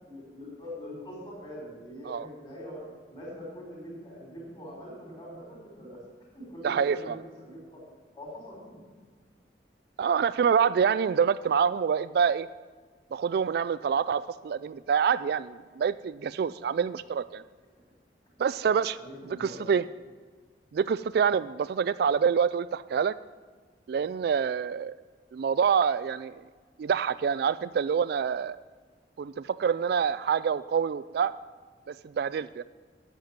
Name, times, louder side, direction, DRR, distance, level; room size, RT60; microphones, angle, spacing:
voice 1, 0.1-2.8 3.1-6.0 6.3-7.8 8.1-8.8 16.5-16.6 19.0-19.6, equal, 30° left, -2 dB, 4.8 m, -43 dB
voice 2, 6.6-7.2 10.0-12.5 13.1-17.4 18.4-19.0 19.4-19.8 20.7-23.1 23.9-25.0 25.3-26.4 26.8-28.6 29.2-31.3 31.9-32.6, right 7 dB, 60° right, 15 dB, 0.3 m, -26 dB
10.5 x 7.6 x 8.7 m, 1.5 s
head